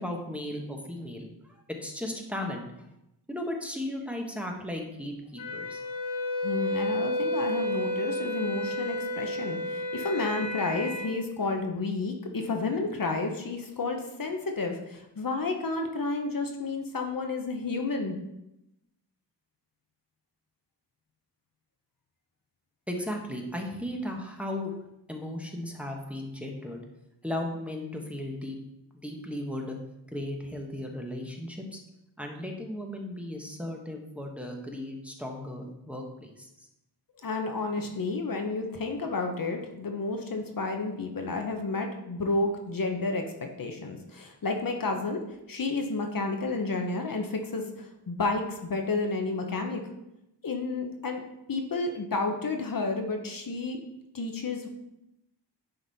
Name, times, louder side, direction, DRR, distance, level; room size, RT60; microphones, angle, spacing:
voice 1, 0.0-2.6 3.3-5.8 22.9-24.8 25.1-26.8 27.2-28.6 28.9-29.8 30.1-31.8 32.2-36.5, left 1 dB, 5° right, 1 dB, 1.1 m, -36 dB
Wind instrument woodwind instrument, 5.4-11.1, left 1 dB, 75° left, 1.5 m, -31 dB
voice 2, 6.4-18.2 37.2-45.2 45.5-49.8 50.4-51.2 51.5-53.8 54.1-54.7, left 3 dB, 50° left, 3 dB, 0.9 m, -31 dB
9.7 x 4.0 x 4.1 m, 0.86 s
wide cardioid pair, 90°, 42 cm